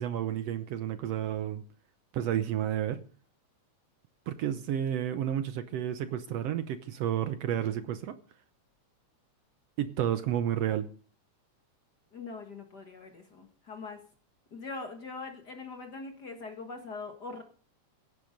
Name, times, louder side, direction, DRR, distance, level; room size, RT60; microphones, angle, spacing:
voice 1, 0.0-1.6 2.1-3.0 4.3-8.1 9.8-10.9, right 10 dB, 70° right, 1.7 m, -31 dB
voice 2, 12.1-14.0 14.5-17.4, left 3 dB, 40° left, 1.7 m, -42 dB
16.5 x 9.6 x 5.2 m
omnidirectional pair, 3.3 m